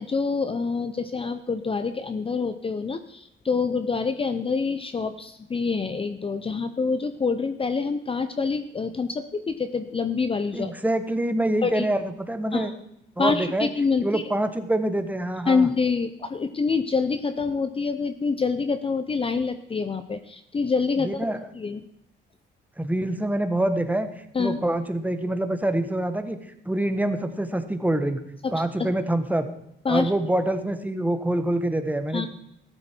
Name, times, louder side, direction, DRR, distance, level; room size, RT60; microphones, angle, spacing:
voice 1, 0.0-10.7 11.6-11.9 12.5-12.7 13.2-14.2 15.5-21.8 24.3-24.6 28.4-28.5 28.8-28.9 29.8-30.1 32.1-32.3, left 4 dB, 30° left, 10 dB, 0.7 m, -26 dB
voice 2, 10.5-12.7 13.2-13.7 14.0-15.7 21.0-21.4 22.8-26.4 26.6-28.2 28.5-29.5 29.9-32.3, right 1 dB, 10° right, 8 dB, 1.3 m, -25 dB
14.0 x 11.5 x 4.5 m, 0.81 s
cardioid pair, 90°, 20 cm